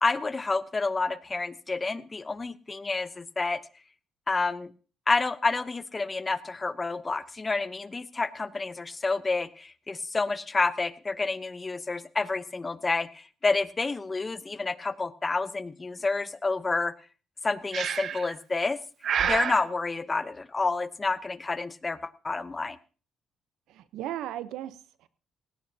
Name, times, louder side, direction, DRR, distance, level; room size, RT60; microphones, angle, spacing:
voice 1, 0.0-3.6 4.3-4.7 5.1-16.9 17.4-18.8 19.2-22.8, left 3 dB, 25° left, 14 dB, 0.8 m, -29 dB
Breathing, 17.7-18.3 19.0-19.6, right 8 dB, 65° right, 0.9 m, -28 dB
voice 2, 23.7-25.1, right 12 dB, 90° right, 14 dB, 0.8 m, -36 dB
18.0 x 16.5 x 2.8 m, 0.36 s
cardioid pair, 90°, 0 cm